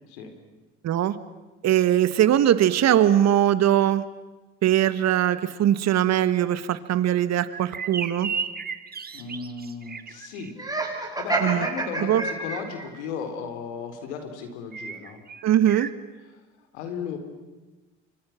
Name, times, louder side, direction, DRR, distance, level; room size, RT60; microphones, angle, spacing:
voice 1, 0.0-0.3 9.1-10.5 11.0-15.2 16.3-16.4 16.7-17.2, left 5 dB, 85° left, 6 dB, 4.1 m, -35 dB
voice 2, 0.8-1.2 1.6-4.0 4.6-8.3 11.4-11.7 12.0-12.2 15.4-15.9, right 11 dB, 50° right, 13 dB, 1.7 m, -21 dB
sound 1, 7.4-10.5 14.7-15.9, right 5 dB, 30° right, 1.5 m, -35 dB
Laughter, 10.6-12.9, right 2 dB, 10° right, 7.4 m, -28 dB
28.5 x 25.5 x 6.0 m, 1.2 s
hypercardioid pair, 75°, 33 cm